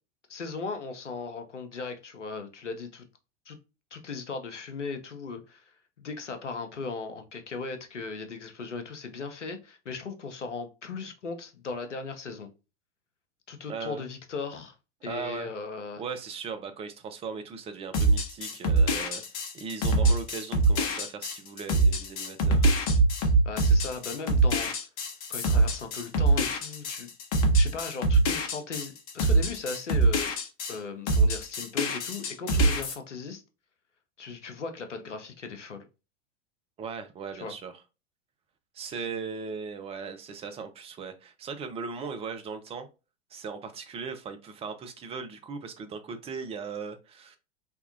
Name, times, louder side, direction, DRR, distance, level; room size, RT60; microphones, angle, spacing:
voice 1, 0.3-3.1 3.5-3.6 3.9-12.5 13.5-14.7 15.0-16.0 23.4-24.7 25.3-27.1 27.5-30.3 30.7-33.4 34.2-35.9 37.3-37.5 38.9-39.1, left 4 dB, 90° left, 0.7 m, -37 dB
voice 2, 13.7-14.0 15.1-15.5 16.0-19.2 19.5-22.6 36.8-37.8 38.7-42.9 43.3-47.4, right 5 dB, 15° right, 0.4 m, -38 dB
sound 1, 17.9-30.8 31.1-32.9, right 2 dB, 50° left, 1.0 m, -24 dB
3.5 x 2.2 x 2.5 m
figure-of-eight pair, 90°, 35 cm